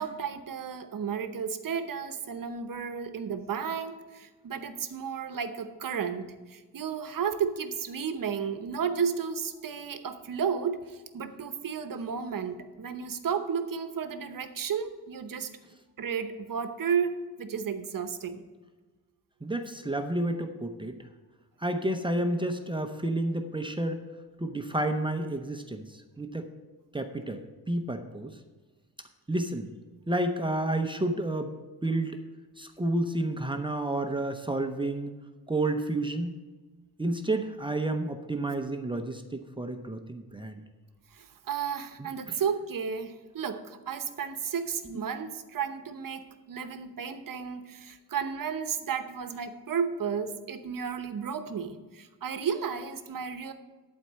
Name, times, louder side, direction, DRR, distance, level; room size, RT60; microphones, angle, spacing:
voice 1, 0.0-15.5 16.0-18.4 41.2-53.5, right 7 dB, 60° right, 9 dB, 0.9 m, -33 dB
voice 2, 19.4-20.9 21.6-24.0 24.4-25.9 26.2-26.5 26.9-27.4 27.7-28.3 29.3-29.7 30.1-31.5 31.8-32.2 32.6-35.1 35.5-36.3 37.0-40.5 42.0-42.4, right 1 dB, 15° right, 5 dB, 0.7 m, -30 dB
11.5 x 4.5 x 7.4 m, 1.3 s
wide cardioid pair, 125°, 38 cm